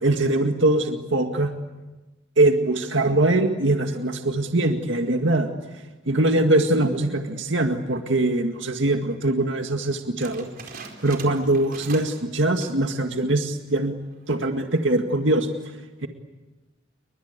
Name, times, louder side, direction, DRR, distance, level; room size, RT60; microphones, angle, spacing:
voice 1, 0.0-1.5 2.4-5.5 6.1-10.5 11.0-14.0 14.3-15.5, right 2 dB, 70° right, 5 dB, 2.0 m, -22 dB
sound 1, 10.2-12.2 12.5-12.9 13.3-13.4 14.1-14.5, right 4 dB, 50° right, 4.4 m, -42 dB
30.0 x 24.0 x 8.3 m, 1.1 s
head